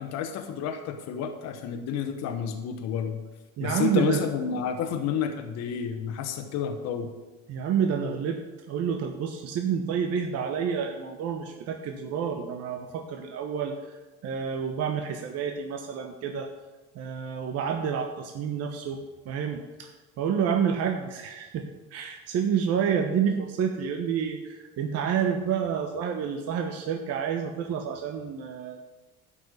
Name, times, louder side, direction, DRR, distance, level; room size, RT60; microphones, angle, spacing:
voice 1, 0.0-3.2 3.6-7.1, left 7 dB, 65° left, 6 dB, 1.2 m, -30 dB
voice 2, 3.6-4.2 7.5-8.4 8.7-14.0 14.2-16.5 16.9-19.0 19.2-19.9 20.2-21.6 21.9-28.8, right 7 dB, 60° right, 4 dB, 1.2 m, -29 dB
11.5 x 5.8 x 8.3 m, 1.2 s
supercardioid pair, 95°, 29 cm